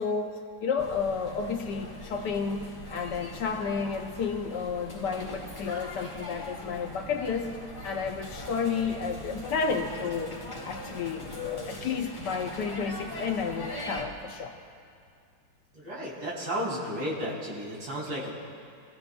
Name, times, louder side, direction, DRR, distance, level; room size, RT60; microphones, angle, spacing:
voice 1, 0.0-10.4 10.6-14.6, left 5 dB, 65° left, 4 dB, 1.3 m, -31 dB
sound 1, 0.8-14.0, left 1 dB, 15° left, 1.8 m, -41 dB
voice 2, 15.7-18.3, equal, 70° right, -5 dB, 3.9 m, -33 dB
25.0 x 15.5 x 2.3 m, 2.3 s
omnidirectional pair, 2.2 m